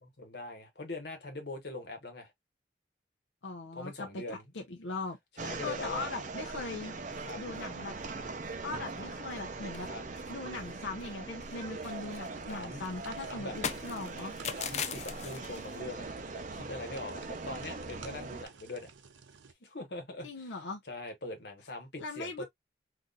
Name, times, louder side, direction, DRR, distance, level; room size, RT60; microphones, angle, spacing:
voice 1, 0.0-2.3 3.7-4.4 5.4-6.1 7.2-7.4 9.9-10.0 12.5-12.8 13.2-13.5 14.6-18.9 19.6-20.5 20.9-22.4, left 2 dB, 60° left, 1.2 m, -42 dB
voice 2, 3.4-5.2 5.6-6.9 7.4-7.9 8.6-9.9 10.3-14.3 20.2-20.8 22.0-22.4, left 3 dB, 85° left, 0.7 m, -40 dB
sound 1, 5.4-18.5, right 3 dB, 40° right, 0.6 m, -41 dB
sound 2, 7.1-7.7 8.0-8.1 8.4-8.6 8.9-9.4 9.7-11.2 11.4-15.8, left 7 dB, 35° left, 0.4 m, -41 dB
sound 3, 11.4-19.5, right 6 dB, 80° right, 0.6 m, -53 dB
4.0 x 2.6 x 2.4 m
head